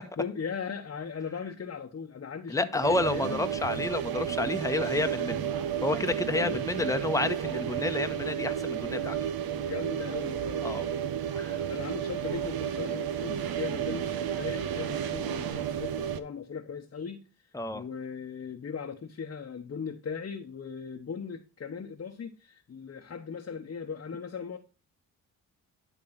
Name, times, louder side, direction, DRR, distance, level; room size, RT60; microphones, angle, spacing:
voice 1, 0.2-3.4 4.9-5.1 6.3-6.7 9.4-11.0 11.7-17.3 17.7-24.6, left 6 dB, 35° left, 1.1 m, -38 dB
voice 2, 2.5-5.5 5.8-9.2 10.6-10.9 11.4-11.6 17.5-17.8, left 2 dB, 10° left, 1.0 m, -30 dB
sound 1, 2.8-16.2, right 9 dB, 60° right, 0.9 m, -32 dB
10.5 x 3.7 x 5.8 m
hypercardioid pair, 45°, 40 cm